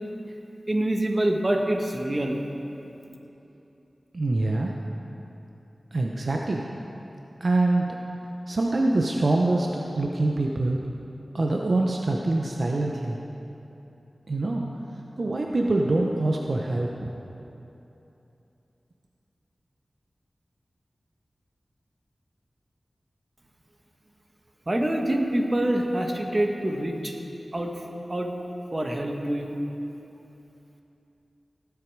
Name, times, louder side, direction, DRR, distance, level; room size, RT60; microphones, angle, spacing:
voice 1, 0.7-2.4 24.7-27.1 27.5-27.7 28.1-28.3 28.7-29.6, right 1 dB, 30° right, 2 dB, 1.3 m, -25 dB
voice 2, 4.1-4.7 5.9-6.7 7.4-8.0 8.5-10.8 11.3-13.2 14.3-14.6 15.2-17.1, right 2 dB, 60° right, 0 dB, 0.8 m, -24 dB
17.5 x 8.4 x 4.7 m, 3.0 s
wide cardioid pair, 80°, 0 cm